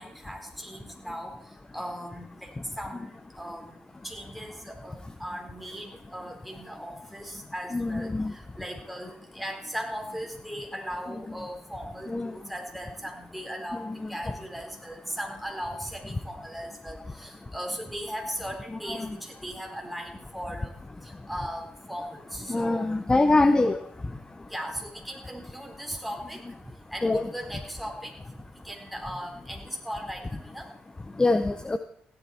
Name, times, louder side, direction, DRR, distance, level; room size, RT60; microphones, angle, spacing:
voice 1, 0.0-2.5 2.8-3.8 4.0-23.1 24.5-28.1 28.6-30.7, equal, ahead, 2 dB, 4.3 m, -38 dB
voice 2, 7.7-8.3 11.1-11.2 12.1-12.3 13.7-14.1 18.7-19.2 22.5-23.8 27.0-27.3 31.2-31.8, left 2 dB, 20° left, 9 dB, 0.9 m, -24 dB
16.5 x 11.5 x 4.4 m, 0.69 s
cardioid pair, 70°, 4 cm